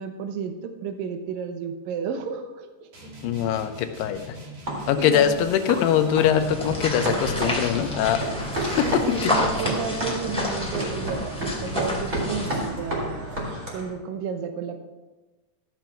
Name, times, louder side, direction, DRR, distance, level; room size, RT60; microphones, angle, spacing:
voice 1, 0.0-3.1 4.9-5.7 8.8-13.4 13.7-14.8, right 6 dB, 75° right, 7 dB, 2.2 m, -32 dB
sound 1, 2.9-9.4, right 1 dB, 45° right, 3.0 m, -42 dB
voice 2, 3.2-4.3 4.9-8.2 8.8-9.3, left 10 dB, 80° left, 7 dB, 2.7 m, -22 dB
sound 2, 4.7-13.9, right 1 dB, 20° right, 3.7 m, -31 dB
sound 3, 6.4-12.7, left 1 dB, ahead, 1.6 m, -30 dB
14.0 x 6.2 x 5.8 m, 1.1 s
omnidirectional pair, 5.0 m